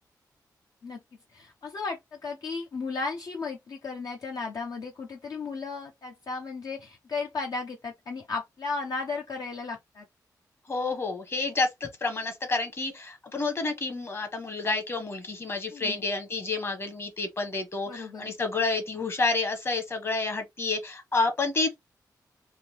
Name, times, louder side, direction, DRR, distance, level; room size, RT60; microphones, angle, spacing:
voice 1, 1.3-10.1 15.7-16.0 17.9-18.3, left 4 dB, 60° left, 0.7 m, -35 dB
voice 2, 10.7-21.8, left 3 dB, 35° left, 1.2 m, -29 dB
3.6 x 2.6 x 2.9 m
wide cardioid pair, 120°, 7 cm